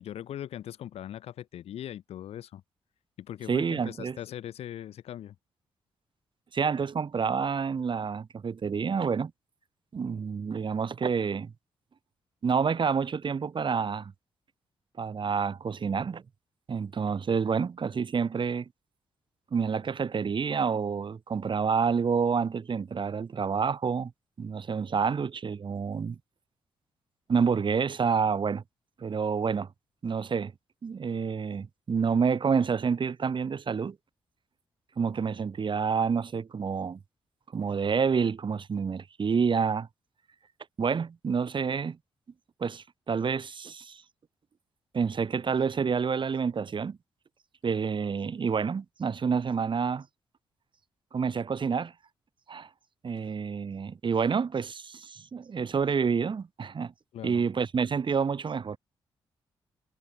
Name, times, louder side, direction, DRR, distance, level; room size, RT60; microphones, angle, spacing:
voice 1, 0.0-2.6 3.2-5.3 53.2-53.3 57.1-57.5, left 11 dB, 80° left, 3.3 m, -40 dB
voice 2, 3.5-4.2 6.5-9.3 9.9-11.5 12.4-14.1 15.0-16.2 16.7-18.6 19.5-24.1 24.4-26.2 27.3-28.6 29.0-29.7 30.0-30.5 30.8-34.0 35.0-37.0 37.5-39.9 40.8-42.0 42.6-44.0 44.9-47.0 47.6-50.1 51.1-51.9 52.5-52.7 53.0-56.9 57.2-58.8, right 6 dB, 50° right, 5.8 m, -28 dB
cardioid pair, 65°, 10 cm